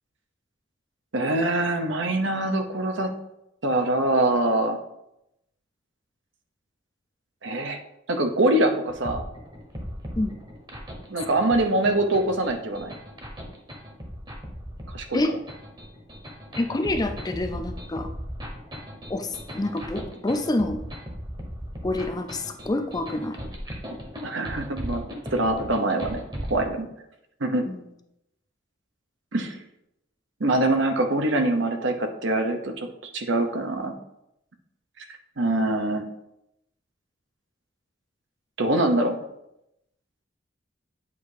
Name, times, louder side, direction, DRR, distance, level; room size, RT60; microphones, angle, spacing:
voice 1, 1.1-3.1 3.6-4.8 7.4-7.8 8.1-9.2 11.1-12.9 14.9-15.2 24.2-26.2 26.5-26.9 27.4-27.7 29.3-29.6 30.4-33.9 35.4-36.0 38.6-39.2, right 2 dB, 70° right, 5 dB, 0.8 m, -24 dB
sound 1, 8.9-26.7, equal, 25° right, 1.0 m, -38 dB
voice 2, 16.6-18.1 19.1-20.8 21.8-23.4 27.7-27.8, left 2 dB, 20° left, 7 dB, 0.5 m, -27 dB
8.2 x 2.7 x 4.8 m, 0.82 s
head